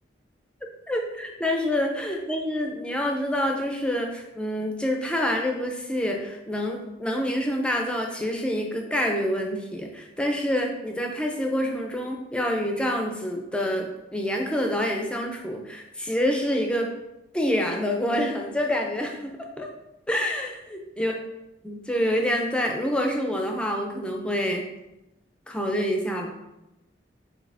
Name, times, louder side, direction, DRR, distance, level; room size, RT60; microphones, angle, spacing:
voice 1, 0.9-16.9 17.3-19.7 20.1-21.2 21.6-24.6 25.5-26.3, equal, 5° left, 1 dB, 0.5 m, -27 dB
7.3 x 2.8 x 2.6 m, 0.96 s
head